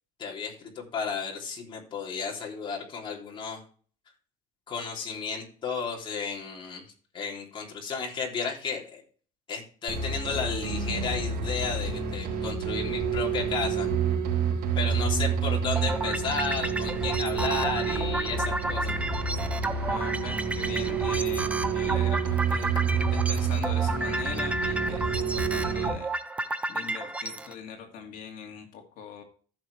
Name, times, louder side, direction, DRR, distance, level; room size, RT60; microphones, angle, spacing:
voice 1, 0.2-3.6 4.7-6.8 7.1-9.0 9.5-13.9 14.7-18.9 22.5-22.6, left 5 dB, 30° left, -1 dB, 3.2 m, -33 dB
sound 1, 9.9-25.9, right 6 dB, 70° right, 3.8 m, -28 dB
sound 2, 15.8-27.5, right 2 dB, 5° right, 0.6 m, -32 dB
voice 2, 19.8-26.1 26.7-29.2, left 7 dB, 55° left, 3 dB, 2.4 m, -41 dB
15.0 x 6.2 x 3.4 m, 0.43 s
cardioid pair, 165°, 17 cm